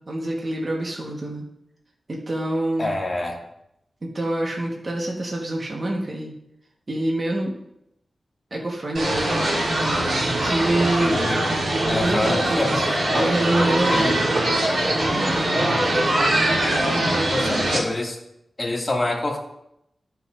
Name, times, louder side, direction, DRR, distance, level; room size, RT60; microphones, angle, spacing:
voice 1, 0.1-1.4 2.1-2.9 4.1-6.3 6.9-7.5 8.5-9.8 10.4-11.3 11.9-14.3 14.8-15.9 16.8-17.7, right 1 dB, 45° right, -2 dB, 1.4 m, -26 dB
voice 2, 2.8-3.4 11.0-11.4 11.9-13.0 13.9-14.1 17.3-18.2 18.6-19.4, left 2 dB, 35° left, -1 dB, 2.3 m, -26 dB
sound 1, 8.9-17.8, right 1 dB, 75° right, 2.9 m, -22 dB
14.0 x 5.8 x 2.6 m, 0.80 s
wide cardioid pair, 70°, 0 cm